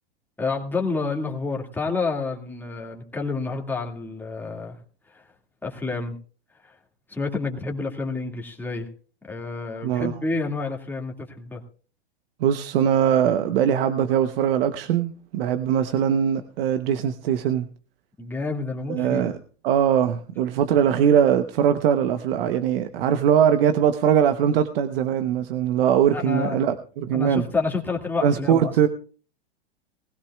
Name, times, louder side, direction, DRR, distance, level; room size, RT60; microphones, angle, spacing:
voice 1, 0.4-4.8 5.1-5.2 5.6-6.2 6.6-6.7 7.1-8.9 9.2-11.6 18.2-19.3 26.1-26.7 27.1-28.7, left 4 dB, 5° left, 2.2 m, -29 dB
voice 2, 12.4-17.7 18.9-19.4 19.6-27.5 28.2-28.9, right 9 dB, 60° right, 1.0 m, -21 dB
20.0 x 15.5 x 2.4 m
hypercardioid pair, 115°, 32 cm